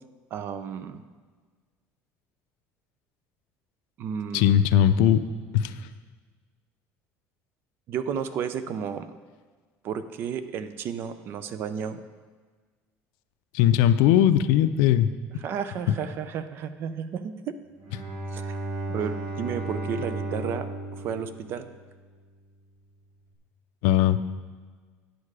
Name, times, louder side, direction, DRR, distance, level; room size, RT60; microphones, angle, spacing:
voice 1, 0.3-1.0 4.0-4.6 7.9-9.1 9.8-12.0 15.4-17.6 18.3-18.6 18.9-20.7 20.9-21.7, right 7 dB, 40° right, 11 dB, 0.5 m, -32 dB
voice 2, 4.3-5.2 5.5-5.8 13.5-15.1 15.9-16.0 23.8-24.2, left 10 dB, 90° left, 12 dB, 0.4 m, -19 dB
Bowed string instrument, 17.8-22.3, right 2 dB, 65° right, 2.5 m, -35 dB
9.9 x 6.6 x 4.9 m, 1.5 s
cardioid pair, 165°, 6 cm